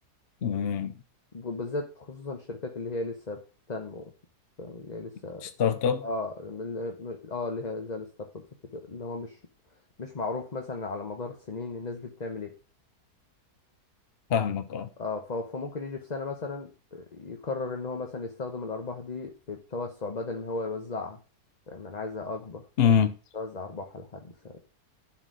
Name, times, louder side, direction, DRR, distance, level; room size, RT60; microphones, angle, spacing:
voice 1, 0.4-0.9 5.4-6.1 14.3-14.9 22.8-23.2, left 7 dB, 55° left, 0.7 m, -25 dB
voice 2, 1.3-3.4 3.7-4.1 4.6-5.5 6.0-8.4 8.7-9.4 10.0-12.5 15.0-21.2 21.7-22.9 23.3-24.6, left 3 dB, 30° left, 1.0 m, -35 dB
11.0 x 4.7 x 6.6 m
omnidirectional pair, 1.7 m